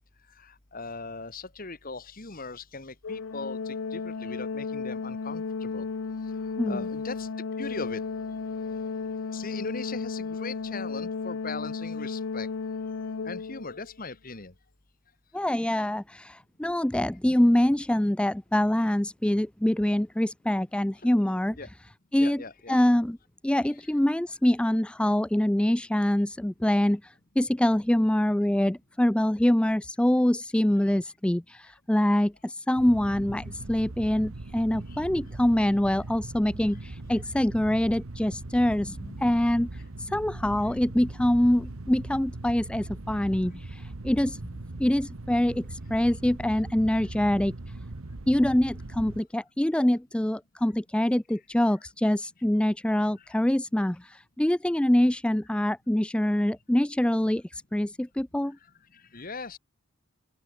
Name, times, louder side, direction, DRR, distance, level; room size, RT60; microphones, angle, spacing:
voice 1, 0.4-5.9 6.4-7.3 7.6-8.9 9.3-12.5 13.2-14.5 21.0-21.1 21.6-21.7 22.2-22.8 34.9-35.0 53.2-53.3 58.9-59.6, left 3 dB, 40° left, 1.8 m, -40 dB
Organ, 3.0-13.9, left 4 dB, 75° left, 0.6 m, -34 dB
voice 2, 15.3-21.6 22.1-22.4 22.7-23.2 23.4-44.4 44.8-47.5 48.3-58.6, left 1 dB, 5° left, 0.3 m, -25 dB
sound 1, 32.8-49.2, right 2 dB, 80° right, 1.3 m, -40 dB
head